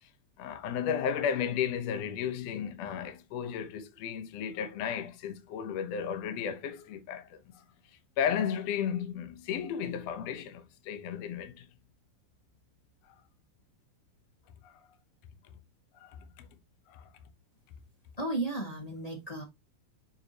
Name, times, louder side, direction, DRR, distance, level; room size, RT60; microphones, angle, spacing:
voice 1, 0.4-7.6 8.2-11.7 14.6-14.8 16.0-16.5 16.9-17.1, left 8 dB, 65° left, 1.7 m, -34 dB
voice 2, 18.2-19.4, right 2 dB, 30° left, 0.7 m, -34 dB
7.1 x 4.8 x 2.9 m
omnidirectional pair, 4.0 m